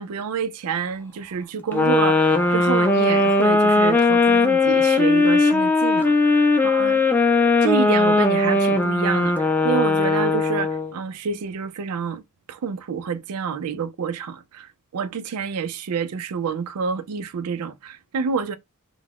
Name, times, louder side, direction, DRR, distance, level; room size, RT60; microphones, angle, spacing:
voice 1, 0.0-7.0 7.6-12.2 12.5-18.6, right 6 dB, 90° right, 0.4 m, -28 dB
sound 1, 1.7-10.9, left 3 dB, 10° left, 0.3 m, -18 dB
2.4 x 2.1 x 3.4 m
head